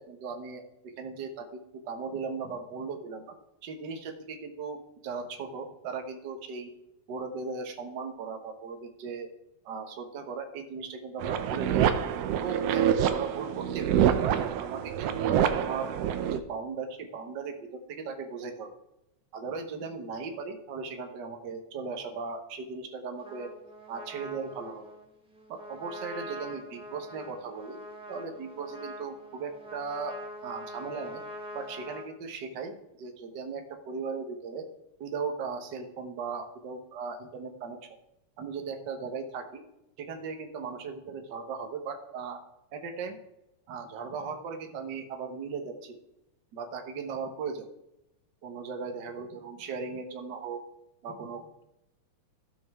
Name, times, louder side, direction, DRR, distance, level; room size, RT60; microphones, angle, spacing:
voice 1, 0.0-3.3 3.6-6.7 7.1-9.3 9.6-12.0 12.4-14.3 14.6-15.9 16.3-18.7 19.3-23.5 23.9-24.8 25.5-27.8 28.1-31.2 31.5-34.7 35.0-37.8 38.4-39.6 40.0-42.4 42.7-43.2 43.7-46.0 46.5-47.7 48.4-50.6 51.0-51.6, right 5 dB, 60° right, 5 dB, 1.1 m, -37 dB
sound 1, 11.2-16.4, right 9 dB, 80° right, 1.5 m, -26 dB
Trumpet, 23.2-32.1, equal, ahead, 1.5 m, -44 dB
17.0 x 6.3 x 3.6 m, 0.89 s
omnidirectional pair, 3.5 m